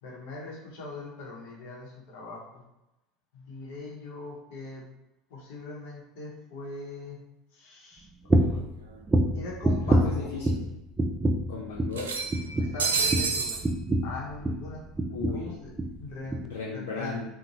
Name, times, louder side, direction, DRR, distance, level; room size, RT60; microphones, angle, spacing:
voice 1, 0.0-2.6 3.3-4.9 5.3-7.2 7.5-8.7 9.3-10.3 12.5-13.7 14.0-14.8 15.3-15.7 16.0-16.5 16.7-17.2, left 3 dB, 70° left, -3 dB, 0.9 m, -41 dB
sound 1, 8.3-8.7 9.1-10.7 11.0-11.5 11.8-12.0 12.3-14.7 15.0-15.5 15.8-16.0 16.3-16.4, right 1 dB, 20° right, 0.4 m, -26 dB
sound 2, 8.5-8.6 8.9-9.0 10.1-10.2 10.5-10.6 11.9-13.6, right 5 dB, 90° right, 0.3 m, -29 dB
voice 2, 10.0-10.7 11.5-12.2 15.1-15.5 16.4-17.2, left 4 dB, 85° left, -3 dB, 0.4 m, -35 dB
2.7 x 2.1 x 2.9 m, 0.94 s
hypercardioid pair, 80°, 0 cm